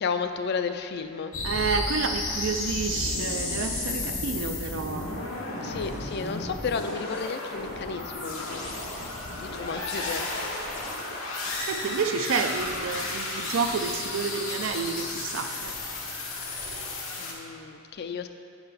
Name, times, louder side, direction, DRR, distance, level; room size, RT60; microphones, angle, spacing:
voice 1, 0.0-1.3 5.6-8.7 9.4-10.5 17.2-18.3, left 5 dB, 55° left, 8 dB, 0.4 m, -33 dB
sound 1, 1.3-17.3, left 2 dB, 85° left, 1.1 m, -33 dB
voice 2, 1.4-5.1 11.6-15.8, right 5 dB, 80° right, 7 dB, 0.5 m, -29 dB
5.8 x 5.4 x 5.5 m, 2.4 s
head